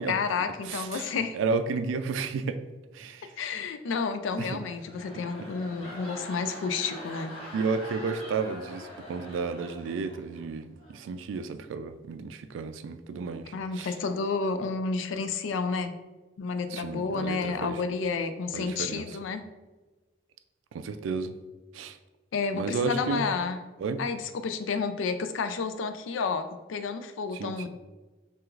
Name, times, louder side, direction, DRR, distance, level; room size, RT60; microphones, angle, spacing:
voice 1, 0.1-1.4 3.4-7.4 13.5-15.9 16.4-19.5 22.3-23.6 24.0-27.7, left 5 dB, 90° left, 9 dB, 0.4 m, -30 dB
voice 2, 0.7-2.6 2.9-3.3 4.4-4.5 7.5-13.9 16.7-17.8 18.5-19.2 20.7-21.3 21.7-22.0 22.5-23.2 23.8-24.0 27.3-27.7, right 4 dB, 85° right, 10 dB, 0.3 m, -32 dB
sound 1, 4.5-10.4 10.8-11.1, equal, 35° left, 1.4 m, -43 dB
5.8 x 2.4 x 2.4 m, 1.2 s
head